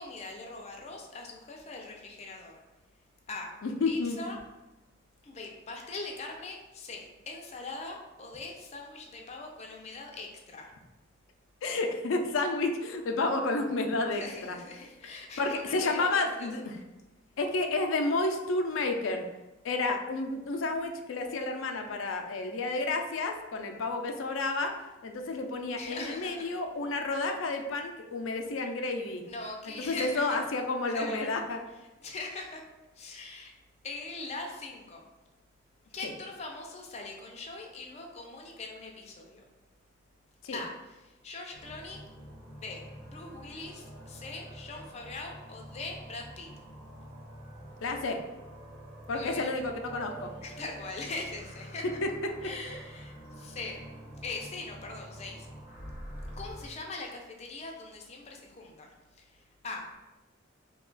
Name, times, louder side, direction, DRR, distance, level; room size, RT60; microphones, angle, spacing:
voice 1, 0.0-2.6 3.3-3.5 3.9-4.4 5.2-10.7 14.1-16.5 25.8-26.5 29.2-30.4 30.9-31.3 32.0-32.6 33.0-33.5 33.8-35.0 35.9-39.4 40.5-42.0 42.5-46.5 49.1-49.6 50.4-51.8 52.4-53.8 54.2-55.5 56.4-60.0, left 3 dB, 35° left, 1 dB, 0.5 m, -41 dB
voice 2, 3.6-4.2 11.6-14.6 15.4-16.8 17.4-19.2 19.6-24.7 25.0-29.2 29.6-31.7 40.4-40.6 47.8-48.2 49.1-50.3 52.0-52.1, left 3 dB, 90° left, 4 dB, 0.4 m, -31 dB
sound 1, 41.5-56.7, equal, 10° right, 1.2 m, -47 dB
2.8 x 2.3 x 3.8 m, 1.0 s
head